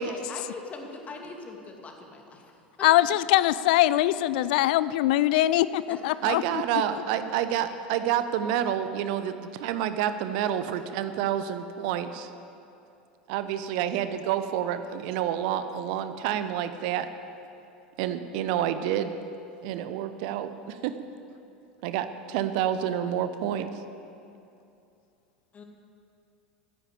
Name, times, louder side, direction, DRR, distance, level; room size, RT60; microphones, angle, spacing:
voice 1, 0.0-2.5 5.9-6.3 25.5-25.6, left 3 dB, 25° left, 2 dB, 2.4 m, -42 dB
voice 2, 2.8-6.4, left 14 dB, 60° left, 17 dB, 0.4 m, -22 dB
voice 3, 6.2-12.3 13.3-17.1 18.0-19.2 19.6-20.9 21.8-23.7, right 10 dB, 55° right, 11 dB, 0.8 m, -28 dB
14.0 x 10.0 x 8.4 m, 2.7 s
figure-of-eight pair, 80°, 5 cm